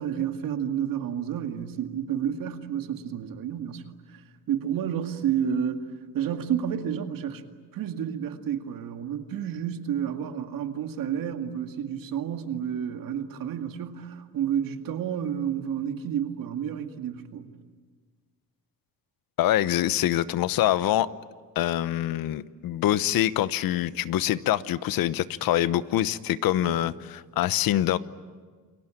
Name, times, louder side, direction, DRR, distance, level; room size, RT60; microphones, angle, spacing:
voice 1, 0.0-7.4 7.7-17.5 26.6-26.7, right 9 dB, 70° right, 6 dB, 2.2 m, -30 dB
voice 2, 19.4-21.1 21.6-28.0, left 13 dB, 75° left, 16 dB, 0.9 m, -25 dB
29.5 x 22.0 x 9.0 m, 1.5 s
cardioid pair, 155°, 35 cm